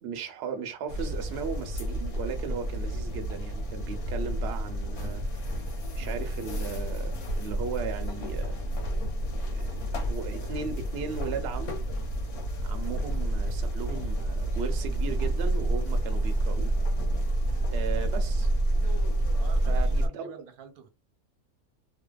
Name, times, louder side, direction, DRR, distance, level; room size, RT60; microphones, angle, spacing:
voice 1, 0.0-5.2 5.9-8.6 9.5-9.7 10.0-11.8 12.6-16.7 17.7-18.5 19.7-20.3, right 6 dB, 65° right, 0.7 m, -36 dB
sound 1, 0.9-20.1, right 1 dB, 85° left, 1.2 m, -29 dB
voice 2, 17.4-17.7 19.4-20.9, right 7 dB, 85° right, 1.1 m, -48 dB
2.6 x 2.2 x 2.2 m
omnidirectional pair, 1.5 m